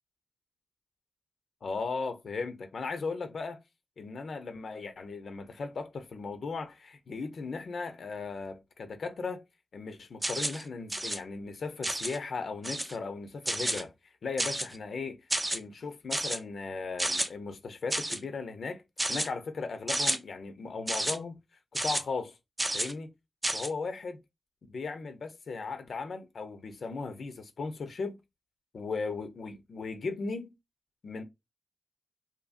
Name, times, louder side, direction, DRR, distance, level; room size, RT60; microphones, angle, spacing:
voice 1, 1.6-3.6 4.0-9.4 9.7-13.9 14.2-15.2 15.5-18.8 19.1-21.4 21.7-22.4 22.7-23.1 23.5-24.2 24.7-28.2 28.7-30.5 31.0-31.2, left 4 dB, 75° left, 0.5 m, -37 dB
sound 1, 10.2-10.6 10.9-11.2 11.8-12.2 12.6-13.0 13.5-13.8 14.4-14.8 15.3-15.6 16.1-16.4 17.0-17.3 17.9-18.2 19.0-19.3 19.9-20.2 20.9-21.2 21.7-22.0 22.6-22.9 23.4-23.7, right 1 dB, 20° right, 0.5 m, -30 dB
2.7 x 2.6 x 2.4 m
cardioid pair, 60°, 0 cm